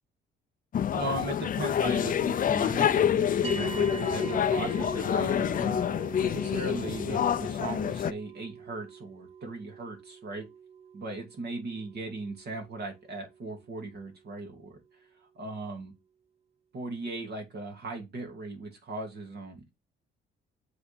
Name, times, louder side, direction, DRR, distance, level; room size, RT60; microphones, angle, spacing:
sound 1, 0.7-8.1, left 9 dB, 45° left, 0.5 m, -27 dB
voice 1, 0.9-5.9 6.2-10.5 10.9-14.8 15.3-15.9 16.7-19.6, right 2 dB, 55° right, 2.5 m, -38 dB
sound 2, 3.4-14.0, right 6 dB, 30° right, 0.9 m, -42 dB
7.6 x 4.0 x 4.2 m
cardioid pair, 90°, 20 cm